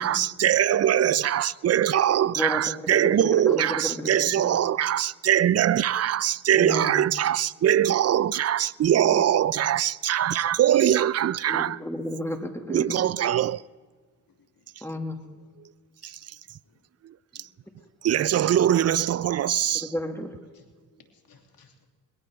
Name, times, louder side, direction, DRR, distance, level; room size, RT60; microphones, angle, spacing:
voice 1, 0.0-11.8 12.7-13.6 16.0-16.2 17.0-17.5 18.0-19.9, right 10 dB, 45° right, 0.5 m, -22 dB
voice 2, 2.9-4.6 6.6-7.0 8.9-9.2 11.5-13.1 14.8-15.2 18.7-18.8 19.7-20.4, left 1 dB, 5° left, 2.0 m, -32 dB
voice 3, 21.0-21.9, left 5 dB, 70° left, 2.7 m, -60 dB
21.0 x 17.0 x 3.5 m
supercardioid pair, 45°, 37 cm